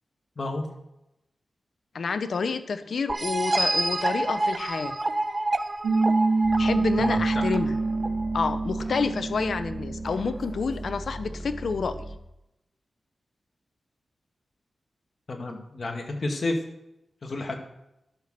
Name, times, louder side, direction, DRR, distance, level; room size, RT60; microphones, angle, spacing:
voice 1, 0.4-0.7 7.0-7.4 15.3-16.6 17.2-17.6, left 2 dB, 55° left, 3 dB, 2.2 m, -31 dB
voice 2, 1.9-5.0 6.6-7.8 8.3-12.0, left 5 dB, 75° left, 11 dB, 0.8 m, -29 dB
sound 1, 3.1-8.6, right 2 dB, 35° right, 0.8 m, -28 dB
Piano, 5.8-11.0, right 3 dB, 80° right, 1.0 m, -26 dB
sound 2, 6.4-12.2, right 1 dB, 20° right, 1.2 m, -39 dB
11.5 x 6.0 x 6.7 m, 0.89 s
cardioid pair, 50°, 0 cm